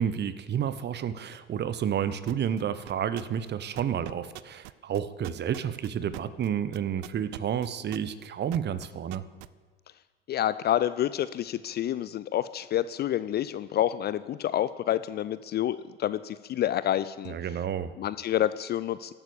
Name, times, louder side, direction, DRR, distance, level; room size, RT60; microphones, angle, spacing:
voice 1, 0.0-9.2 17.2-17.9, right 9 dB, 35° right, 14 dB, 1.1 m, -30 dB
sound 1, 2.3-2.6 2.9-3.5 3.8-9.5, right 22 dB, 60° right, 0.6 m, -41 dB
voice 2, 10.3-17.3 18.0-19.1, left 11 dB, 35° left, 15 dB, 0.5 m, -28 dB
16.0 x 12.5 x 7.0 m, 1.4 s
figure-of-eight pair, 70°, 30 cm